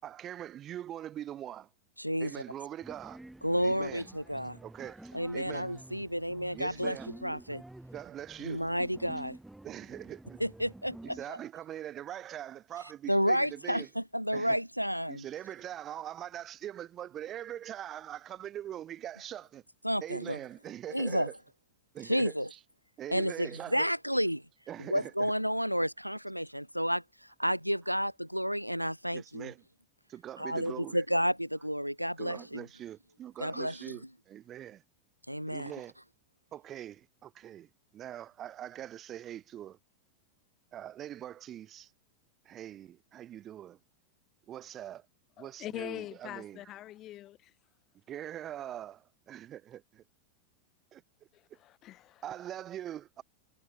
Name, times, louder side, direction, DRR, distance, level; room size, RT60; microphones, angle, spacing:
voice 1, 0.0-1.7 2.2-3.2 3.6-4.0 4.6-5.7 6.5-7.1 7.9-8.6 9.1-9.2 9.6-10.4 11.0-13.9 14.3-14.6 15.1-19.6 20.0-21.3 21.9-22.6 23.0-23.9 24.7-25.3 29.1-29.6 30.1-31.0 32.2-34.8 35.5-35.9 36.5-39.8 40.7-41.9 42.5-43.8 44.5-45.1 45.4-46.6 48.1-50.0 50.9-51.0 52.2-53.2, right 11 dB, 30° right, 5.6 m, -42 dB
voice 2, 2.0-2.3 3.4-4.6 5.1-7.6 8.4-9.4 10.4-11.2 13.1-15.2 19.8-20.4 20.9-21.3 22.0-22.5 23.1-24.4 24.9-27.0 27.4-29.5 30.4-32.6 33.4-34.0 35.3-35.7, equal, 90° right, 0.4 m, -31 dB
sound 1, 2.8-11.2, right 1 dB, 5° right, 4.6 m, -50 dB
voice 3, 45.4-47.5 51.3-52.2, left 14 dB, 35° left, 2.7 m, -43 dB
figure-of-eight pair, 90°, 0 cm